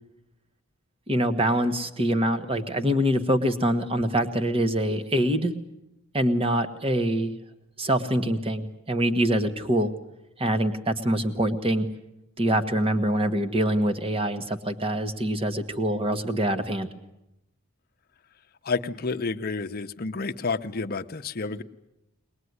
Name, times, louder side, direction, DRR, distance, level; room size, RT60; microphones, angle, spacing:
voice 1, 1.1-5.5 6.1-7.3 7.8-9.9 10.4-11.9 12.4-16.9, right 1 dB, 25° right, 10 dB, 1.4 m, -24 dB
voice 2, 18.6-21.6, left 4 dB, 45° left, 7 dB, 0.9 m, -30 dB
22.0 x 21.0 x 9.6 m, 0.86 s
head